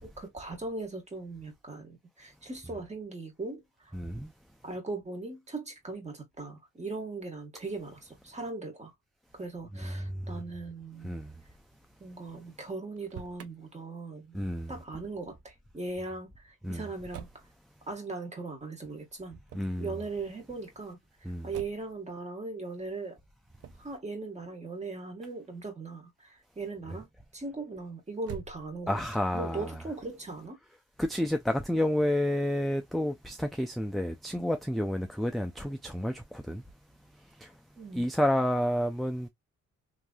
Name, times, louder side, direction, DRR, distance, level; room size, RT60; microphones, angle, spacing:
voice 1, 0.0-3.9 4.6-8.9 9.3-11.1 12.0-14.4 14.7-17.3 17.9-19.4 19.8-21.0 21.4-23.2 23.8-27.1 27.3-29.0 29.3-30.6 37.8-38.1, right 3 dB, 20° right, 1.3 m, -39 dB
voice 2, 3.9-4.3 9.8-10.4 11.0-11.4 14.3-14.7 16.6-16.8 19.5-20.0 21.2-21.5 28.9-29.8 31.0-36.6 37.2-37.6 37.9-39.3, left 1 dB, ahead, 0.3 m, -30 dB
Motor vehicle (road), 12.8-13.5 17.1-17.5 19.4-19.8 21.5-22.0 23.6-23.9 28.2-29.0, right 8 dB, 55° right, 0.5 m, -45 dB
3.1 x 2.6 x 2.3 m
cardioid pair, 90°, 30 cm